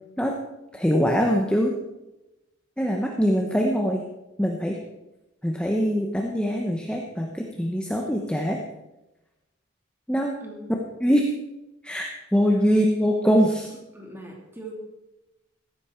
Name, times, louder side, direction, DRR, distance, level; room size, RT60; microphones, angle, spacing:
voice 1, 0.7-1.7 2.8-4.0 4.4-4.8 5.4-8.6 10.1-10.4 11.0-11.3 11.8-13.7, equal, 5° left, 1 dB, 1.1 m, -23 dB
voice 2, 13.9-14.8, right 1 dB, 10° right, 0 dB, 2.9 m, -40 dB
16.0 x 13.5 x 4.6 m, 0.98 s
head